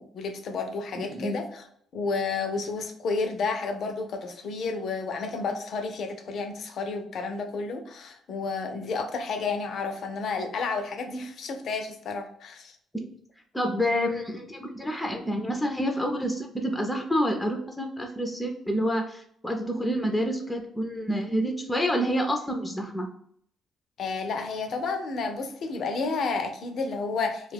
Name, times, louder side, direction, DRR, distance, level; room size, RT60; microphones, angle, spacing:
voice 1, 0.0-1.7 1.9-12.7 24.0-27.5, left 4 dB, 65° left, 6 dB, 0.5 m, -31 dB
voice 2, 1.0-1.4 12.9-13.1 13.5-23.1, equal, 10° left, 3 dB, 0.6 m, -28 dB
2.3 x 2.3 x 3.4 m, 0.66 s
supercardioid pair, 65°, 0 cm